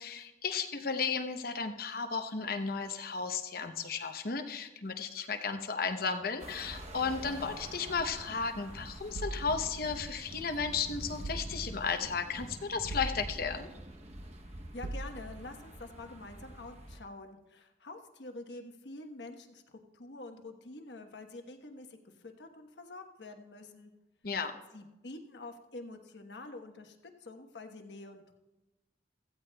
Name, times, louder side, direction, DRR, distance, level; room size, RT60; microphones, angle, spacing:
voice 1, 0.0-13.7 24.2-24.5, left 5 dB, 55° left, 7 dB, 0.8 m, -34 dB
sound 1, 6.4-17.0, right 1 dB, 40° right, 0.9 m, -46 dB
sound 2, 9.1-10.5 11.2-12.1 12.9-13.8 14.8-15.6, right 1 dB, 80° right, 0.6 m, -42 dB
voice 2, 14.5-19.6 19.9-22.0 22.2-23.9 24.7-27.0 27.2-28.3, left 2 dB, 75° left, 5 dB, 1.2 m, -47 dB
16.0 x 14.5 x 2.3 m, 1.0 s
head